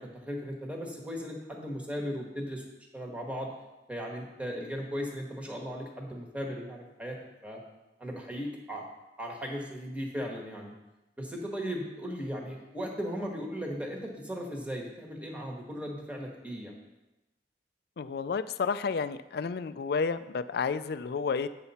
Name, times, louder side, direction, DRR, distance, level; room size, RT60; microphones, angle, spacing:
voice 1, 0.0-2.6 2.9-3.5 3.9-7.6 8.0-8.8 9.2-10.7 11.2-16.7, equal, 10° right, -1 dB, 1.4 m, -37 dB
voice 2, 18.0-21.5, left 5 dB, 60° left, 13 dB, 0.4 m, -31 dB
8.9 x 6.8 x 4.2 m, 1.0 s
head